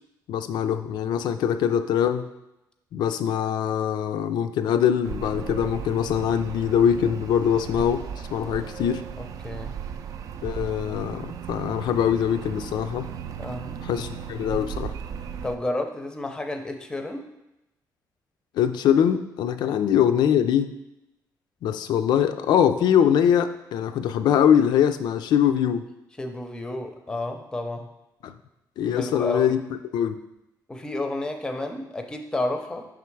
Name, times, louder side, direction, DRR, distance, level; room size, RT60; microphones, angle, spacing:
voice 1, 0.3-2.3 2.9-8.1 8.3-9.0 10.4-13.1 13.8-14.9 18.6-20.7 21.6-25.9 28.2-28.3 28.8-29.6 29.9-30.2, left 9 dB, 90° left, 10 dB, 0.4 m, -23 dB
sound 1, 5.0-15.6, right 7 dB, 55° right, 0.3 m, -36 dB
voice 2, 9.2-9.8 13.4-13.8 15.4-17.3 19.6-19.8 26.2-27.9 28.9-29.6 30.7-32.9, left 2 dB, 10° left, 5 dB, 0.5 m, -31 dB
6.1 x 3.5 x 4.5 m, 0.91 s
cardioid pair, 175°, 7 cm